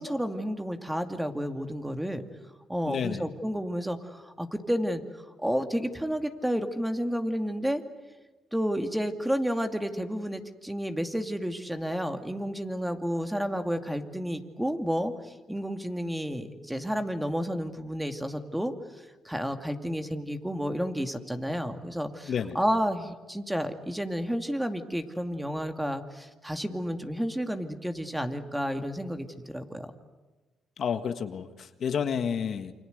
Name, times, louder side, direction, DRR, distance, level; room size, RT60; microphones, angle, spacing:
voice 1, 0.0-2.2 2.7-5.0 5.4-7.8 8.5-18.7 19.2-29.9, equal, 5° right, 6 dB, 2.4 m, -31 dB
voice 2, 2.9-3.3 22.3-22.6 30.8-32.7, left 7 dB, 60° left, 8 dB, 1.7 m, -30 dB
29.0 x 25.5 x 8.1 m, 1.2 s
cardioid pair, 90°, 0 cm